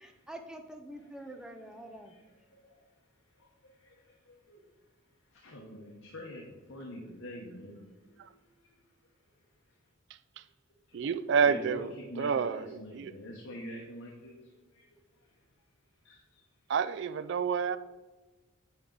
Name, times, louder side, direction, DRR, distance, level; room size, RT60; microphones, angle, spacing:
voice 1, 0.0-2.2, right 1 dB, 5° right, 5 dB, 0.5 m, -46 dB
voice 2, 1.8-4.6 5.3-8.9 9.3-9.8 10.9-11.1 11.5-15.4 16.0-16.4 17.3-17.6, equal, 70° left, -1 dB, 1.0 m, -47 dB
voice 3, 10.9-11.9 12.2-13.1 16.7-17.8, right 6 dB, 55° right, 15 dB, 0.3 m, -29 dB
8.8 x 4.5 x 3.8 m, 1.2 s
head